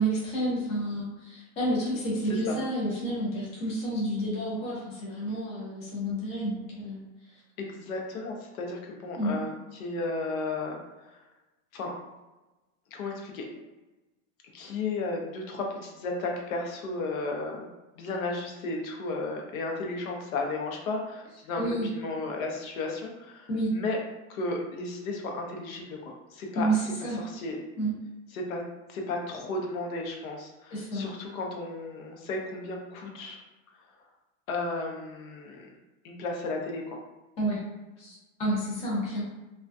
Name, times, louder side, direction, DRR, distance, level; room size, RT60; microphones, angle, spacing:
voice 1, 0.0-7.0 9.2-9.3 21.6-21.9 23.5-23.7 26.5-27.2 27.8-27.9 30.7-31.1 37.4-37.6 38.0-39.2, right 1 dB, 15° left, -7 dB, 0.5 m, -30 dB
voice 2, 2.3-2.6 7.6-11.2 11.7-11.9 12.9-13.4 14.5-17.7 18.0-21.6 21.9-24.0 24.3-27.6 28.3-28.6 28.9-33.4 34.5-35.8 36.0-37.0, left 3 dB, 80° left, 1 dB, 0.7 m, -34 dB
2.3 x 2.2 x 2.5 m, 1.1 s
supercardioid pair, 160°, 41 cm